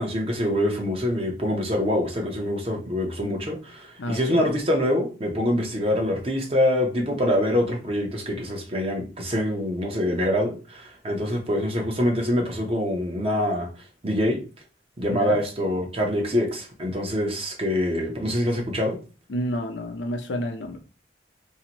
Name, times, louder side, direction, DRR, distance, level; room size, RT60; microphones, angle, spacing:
voice 1, 0.0-13.7 14.0-14.4 15.0-19.0, left 1 dB, 30° right, 1 dB, 0.7 m, -25 dB
voice 2, 4.0-4.5 15.1-15.4 19.3-20.8, equal, 75° left, 5 dB, 0.6 m, -30 dB
2.8 x 2.5 x 2.9 m, 0.35 s
head